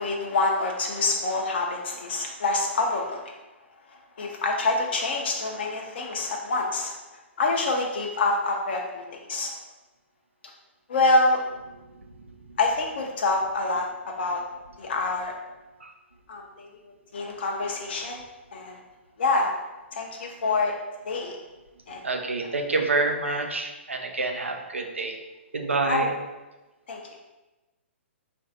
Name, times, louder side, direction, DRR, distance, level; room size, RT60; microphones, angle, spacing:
voice 1, 0.0-3.4 4.2-7.0 7.4-9.5 10.9-11.4 12.6-14.4 14.8-15.3 16.3-16.8 17.1-18.2 18.5-18.8 19.2-19.5 19.9-20.7 21.1-21.4 21.9-22.0 22.4-22.5 23.2-23.4 25.8-26.1 26.9-27.0, left 2 dB, 55° left, 0 dB, 0.5 m, -26 dB
voice 2, 22.0-25.2 25.5-26.1, right 3 dB, 75° right, 4 dB, 0.6 m, -27 dB
3.8 x 2.6 x 3.9 m, 1.1 s
figure-of-eight pair, 120°, 7 cm